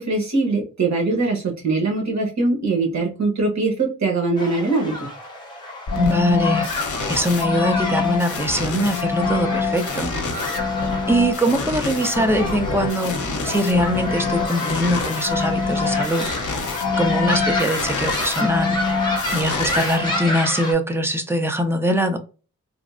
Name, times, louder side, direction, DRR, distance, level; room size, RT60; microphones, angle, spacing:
voice 1, 0.0-5.1, right 3 dB, 60° right, 0 dB, 1.1 m, -22 dB
sound 1, 4.4-20.7, left 2 dB, 15° left, 1.0 m, -29 dB
sound 2, 5.9-20.5, left 4 dB, 70° left, 0.7 m, -26 dB
voice 2, 6.0-6.7 7.1-10.1 11.1-16.3 17.0-18.8 19.3-22.2, equal, 10° right, 6 dB, 0.3 m, -22 dB
3.4 x 2.0 x 2.4 m, 0.36 s
wide cardioid pair, 150°, 31 cm